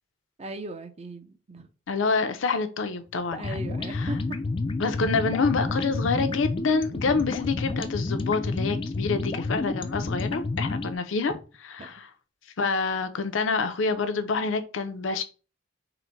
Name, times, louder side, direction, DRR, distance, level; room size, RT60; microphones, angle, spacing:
voice 1, 0.4-1.7 3.3-4.4 11.8-11.9, right 2 dB, 35° right, 0.5 m, -38 dB
voice 2, 1.9-3.6 3.9-4.1 4.8-11.3 11.8-12.1 12.6-15.2, left 4 dB, 75° left, 0.6 m, -27 dB
sound 1, 3.3-11.0, left 3 dB, 25° left, 0.3 m, -30 dB
3.9 x 2.1 x 4.4 m
head